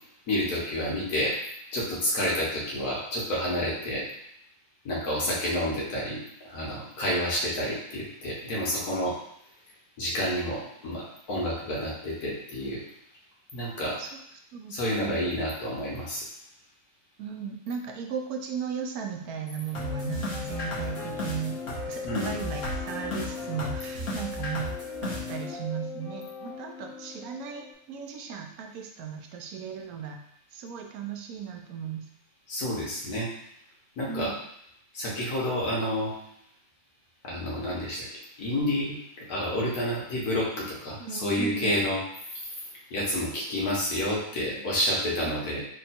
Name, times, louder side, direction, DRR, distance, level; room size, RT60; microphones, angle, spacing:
voice 1, 0.3-1.3 1.7-4.0 4.9-6.2 6.5-9.1 10.0-12.8 13.5-14.0 14.7-16.2 22.0-22.3 32.5-33.3 34.0-34.3 34.9-36.1 37.2-38.0 38.4-39.0 39.3-42.0 42.9-45.6, equal, 85° left, -5 dB, 1.7 m, -29 dB
voice 2, 14.5-15.3 17.2-21.6 21.9-24.7 25.0-30.2 30.5-32.1 34.1-34.3 41.0-41.7 44.5-44.6 45.2-45.4, right 6 dB, 80° right, 3 dB, 1.0 m, -36 dB
sound 1, 19.7-27.7, left 2 dB, 60° left, 1.4 m, -35 dB
3.7 x 2.3 x 4.2 m, 0.73 s
omnidirectional pair, 1.6 m